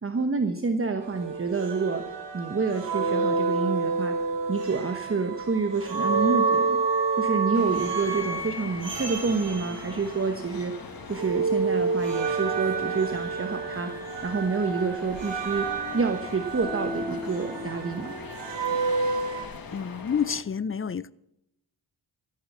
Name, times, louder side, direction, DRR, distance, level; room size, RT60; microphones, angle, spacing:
voice 1, 0.0-2.0 2.3-4.2 4.5-6.8 7.2-18.1, right 4 dB, 30° right, 1.1 m, -28 dB
sound 1, 1.0-10.8 11.1-19.5, right 4 dB, 70° right, 2.9 m, -29 dB
sound 2, 7.5-20.4, left 5 dB, 50° left, 1.6 m, -42 dB
voice 2, 19.7-21.1, left 7 dB, 30° left, 0.4 m, -29 dB
14.0 x 10.5 x 7.2 m
wide cardioid pair, 115°, 44 cm